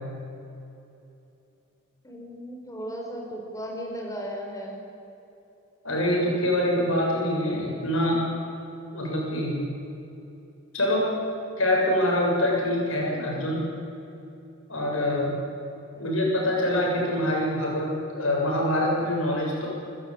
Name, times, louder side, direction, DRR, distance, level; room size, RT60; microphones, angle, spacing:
voice 1, 2.0-4.8 13.1-13.4 15.9-16.2, equal, 15° left, 0 dB, 4.8 m, -36 dB
voice 2, 5.8-8.2 8.9-9.6 10.7-11.1 11.6-13.7 14.7-15.3 16.0-19.7, left 1 dB, 75° left, -2 dB, 7.4 m, -25 dB
27.0 x 14.5 x 8.9 m, 2.8 s
head